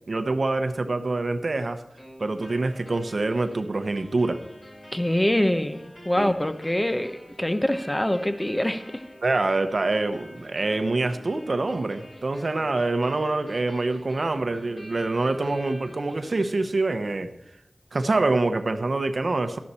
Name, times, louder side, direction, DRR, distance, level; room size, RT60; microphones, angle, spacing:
voice 1, 0.1-1.8 2.2-4.4 6.2-6.3 9.2-17.3 17.9-19.6, right 2 dB, 70° right, 9 dB, 0.9 m, -25 dB
sound 1, 2.0-16.9, equal, 45° left, 5.9 m, -47 dB
voice 2, 4.9-9.0, left 1 dB, 20° left, 9 dB, 1.0 m, -25 dB
12.5 x 11.5 x 4.3 m, 0.80 s
wide cardioid pair, 55°, 0 cm